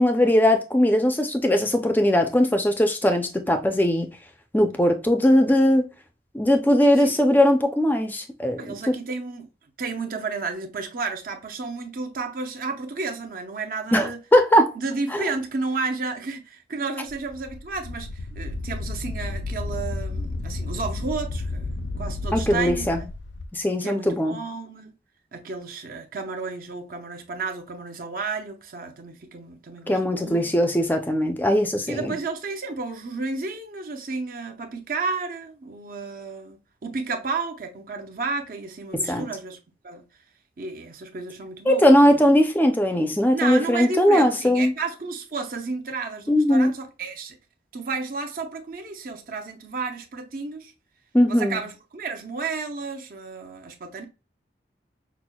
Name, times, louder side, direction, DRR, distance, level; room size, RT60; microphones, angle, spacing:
voice 1, 0.0-4.1 4.5-5.8 6.3-8.9 13.9-14.7 15.1-15.2 22.3-23.0 23.5-24.4 29.9-32.1 39.1-39.3 41.7-44.7 46.3-46.7 51.1-51.6, left 1 dB, 10° left, 0.4 m, -20 dB
voice 2, 8.6-9.5 9.8-14.2 14.7-21.7 22.0-23.1 23.8-24.9 25.3-30.5 31.9-39.6 39.8-40.1 40.6-42.2 43.3-47.4 47.7-50.7 51.3-54.0, right 4 dB, 50° right, 0.6 m, -32 dB
Wind, 17.1-23.5, left 2 dB, 80° left, 0.4 m, -32 dB
6.0 x 2.1 x 2.3 m
head